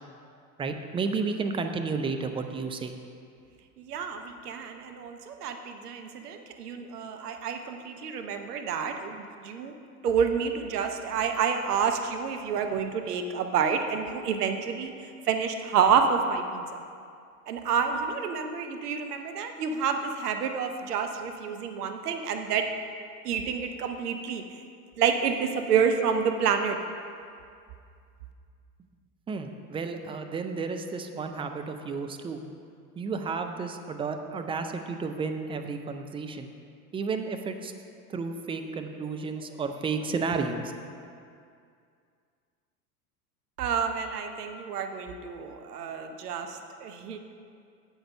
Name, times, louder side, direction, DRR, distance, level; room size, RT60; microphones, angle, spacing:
voice 1, 0.6-2.9 29.3-32.4 33.0-36.5 36.9-37.7 38.1-40.7, right 4 dB, 15° right, 6 dB, 0.3 m, -32 dB
voice 2, 3.8-9.7 10.0-14.9 15.3-16.8 17.5-22.7 23.2-24.4 25.0-26.8 43.6-47.2, right 6 dB, 80° right, 6 dB, 0.8 m, -28 dB
7.9 x 6.2 x 5.3 m, 2.3 s
hypercardioid pair, 85°, 46 cm